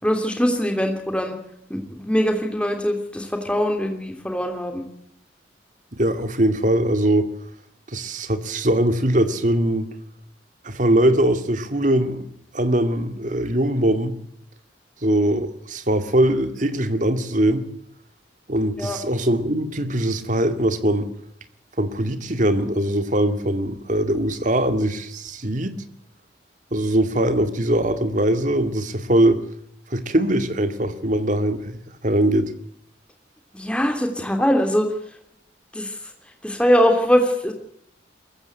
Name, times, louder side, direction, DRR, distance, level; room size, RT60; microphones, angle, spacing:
voice 1, 0.0-1.3 1.7-4.9 18.8-19.0 33.5-34.9 35.7-36.0 36.4-37.5, equal, 5° left, 3.1 m, -22 dB
voice 2, 5.9-7.3 7.9-9.9 10.6-12.2 12.5-14.1 15.0-17.6 18.5-21.1 21.8-25.8 26.7-29.4 29.9-32.5, right 1 dB, 45° right, 2.1 m, -21 dB
22.5 x 15.0 x 8.1 m
head